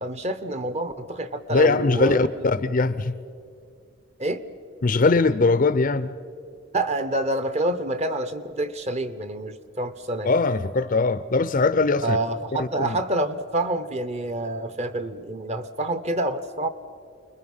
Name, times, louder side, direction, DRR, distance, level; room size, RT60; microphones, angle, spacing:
voice 1, 0.0-2.2 4.2-4.4 6.7-10.3 12.0-16.7, right 1 dB, 30° right, 12 dB, 0.8 m, -27 dB
voice 2, 1.5-3.1 4.8-6.1 10.2-12.2 12.6-13.0, left 3 dB, 40° left, 14 dB, 0.5 m, -21 dB
29.5 x 21.0 x 5.5 m, 2.4 s
head